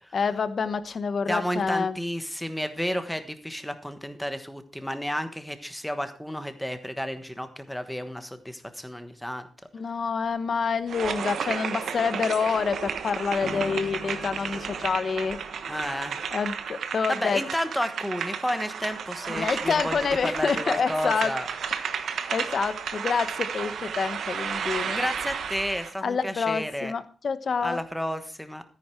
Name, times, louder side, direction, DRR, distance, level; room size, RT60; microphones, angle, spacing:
voice 1, 0.1-2.0 9.7-15.4 16.3-17.4 19.3-21.3 22.0-25.0 26.0-27.8, left 5 dB, 40° left, 12 dB, 1.0 m, -27 dB
voice 2, 1.3-9.5 15.7-16.2 17.1-21.5 24.9-26.9 27.6-28.6, equal, ahead, 9 dB, 1.2 m, -31 dB
sound 1, 10.9-25.9, right 7 dB, 70° right, 1.2 m, -33 dB
sound 2, 13.4-16.5, left 6 dB, 70° left, 1.2 m, -44 dB
13.5 x 10.0 x 4.5 m, 0.37 s
wide cardioid pair, 175°, 0 cm